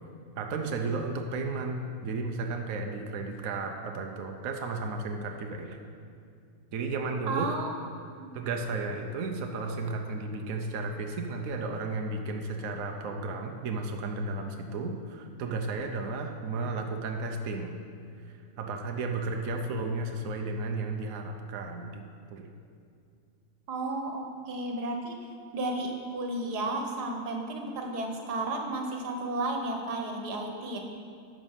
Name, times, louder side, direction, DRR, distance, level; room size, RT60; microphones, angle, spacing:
voice 1, 0.4-5.8 6.7-7.5 8.3-17.8 18.6-22.5, right 3 dB, 65° right, 3 dB, 1.1 m, -33 dB
voice 2, 7.3-7.7 8.1-8.3 23.7-25.2 25.5-30.8, right 2 dB, 90° right, 3 dB, 1.6 m, -33 dB
10.0 x 6.2 x 5.7 m, 2.3 s
omnidirectional pair, 1.7 m